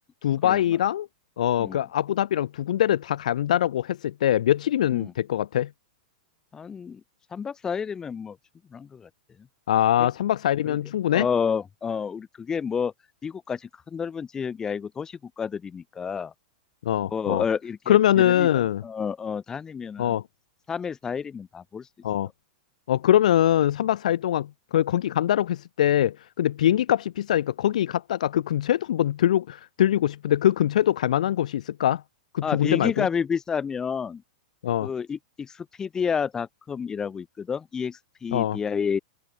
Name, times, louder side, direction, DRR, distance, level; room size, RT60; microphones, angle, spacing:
voice 1, 0.2-1.1 1.4-5.7 9.7-11.3 16.8-17.4 17.9-18.8 20.0-20.2 22.0-22.3 22.9-32.0 32.3-33.1 34.6-34.9 38.3-38.6, left 11 dB, 75° left, 3.7 m, -23 dB
voice 2, 6.5-7.0 7.3-8.4 8.7-9.1 10.0-10.1 10.7-10.8 11.1-12.9 13.2-16.3 17.1-18.5 18.8-20.2 20.7-21.9 32.4-34.2 34.8-39.0, left 6 dB, 15° left, 5.0 m, -30 dB
open air
hypercardioid pair, 145°, 4 cm